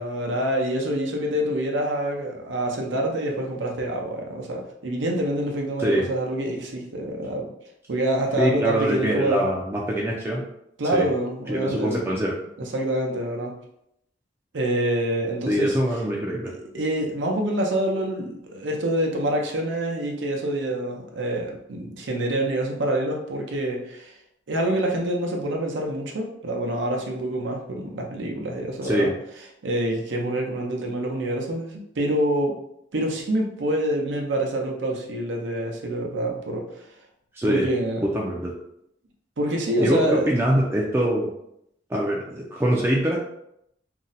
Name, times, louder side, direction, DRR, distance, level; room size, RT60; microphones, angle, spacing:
voice 1, 0.0-7.5 7.9-9.5 10.8-12.0 12.6-13.5 14.5-15.8 16.5-24.1 24.5-29.1 29.6-32.5 32.9-36.7 37.5-38.1 39.4-40.3, right 1 dB, 90° right, 1 dB, 0.6 m, -26 dB
voice 2, 8.4-10.5 10.9-11.1 11.5-12.3 15.5-16.5 28.8-29.1 37.3-37.7 38.0-38.5 39.8-41.3 41.9-43.2, equal, 15° right, -3 dB, 0.3 m, -23 dB
2.6 x 2.1 x 3.9 m, 0.77 s
head